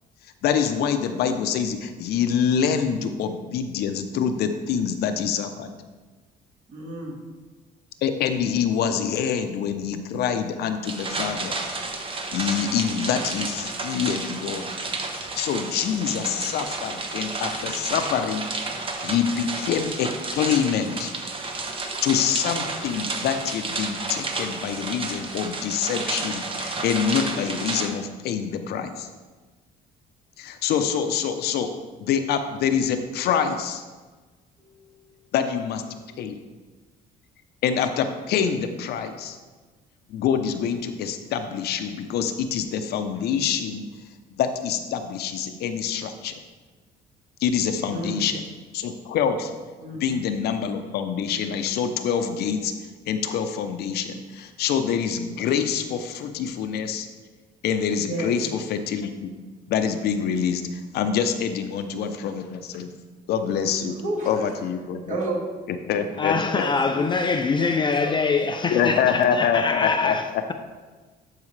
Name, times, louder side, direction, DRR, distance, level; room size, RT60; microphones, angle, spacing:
voice 1, 0.4-5.7 8.0-11.6 12.3-14.7 15.2-18.5 18.7-21.1 21.7-29.1 30.4-31.7 32.0-33.8 35.3-35.8 36.2-36.4 37.6-39.4 40.1-43.9 44.3-46.3 47.4-48.4 48.7-49.5 49.9-52.7 53.1-57.1 57.6-59.3 59.7-62.9 63.3-64.0 64.3-65.2 65.9-66.6 68.7-70.2, left 7 dB, 70° left, 0.7 m, -26 dB
voice 2, 6.7-7.1 34.6-35.3 47.9-48.3 49.8-50.0 58.1-58.4 64.0-64.5 65.1-65.4 65.9-69.2, right 2 dB, 45° right, 2.2 m, -33 dB
sound 1, 10.8-27.9, right 3 dB, 30° right, 1.0 m, -31 dB
voice 3, 66.2-70.5, left 4 dB, 30° left, 0.4 m, -24 dB
12.0 x 4.8 x 3.3 m
cardioid pair, 110°, 17 cm